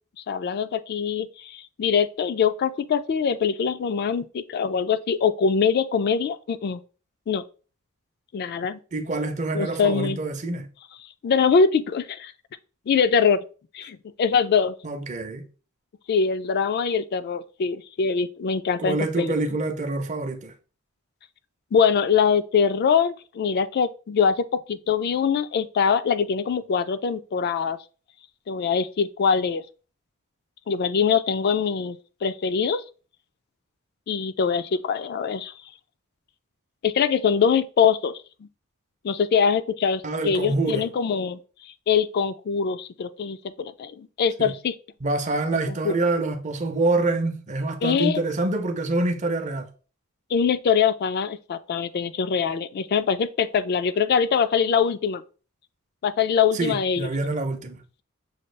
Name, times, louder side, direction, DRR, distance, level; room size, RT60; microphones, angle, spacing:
voice 1, 0.3-6.8 7.3-7.4 8.3-8.8 9.5-10.2 11.2-12.3 12.9-13.4 13.7-14.7 16.1-19.4 21.7-27.8 28.5-29.6 30.7-32.8 34.1-35.5 36.8-38.1 39.0-44.7 45.7-45.9 47.8-48.2 50.3-55.2 56.0-57.1, left 6 dB, 45° left, 0.3 m, -23 dB
voice 2, 8.9-10.7 14.8-15.4 18.8-20.5 40.0-40.9 44.4-44.5 45.0-49.7 56.5-57.8, right 2 dB, 35° right, 0.6 m, -26 dB
6.3 x 2.3 x 3.2 m
head